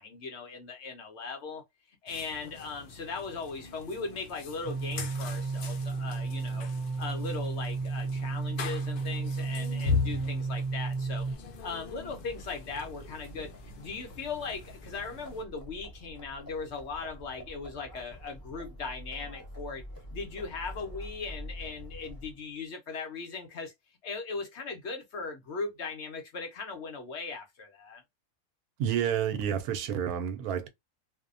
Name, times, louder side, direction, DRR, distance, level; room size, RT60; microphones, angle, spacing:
voice 1, 0.0-6.7 7.0-11.3 11.6-19.8 20.1-23.7 24.0-28.0, left 4 dB, 60° left, 0.8 m, -39 dB
sound 1, 2.1-15.4, left 5 dB, 80° left, 0.4 m, -39 dB
sound 2, 4.6-11.4, right 4 dB, 65° right, 1.1 m, -33 dB
Livestock farm animals working animals, 11.0-22.5, equal, 15° left, 0.8 m, -47 dB
voice 2, 28.8-30.7, right 9 dB, 85° right, 1.1 m, -29 dB
2.6 x 2.1 x 2.4 m
omnidirectional pair, 1.5 m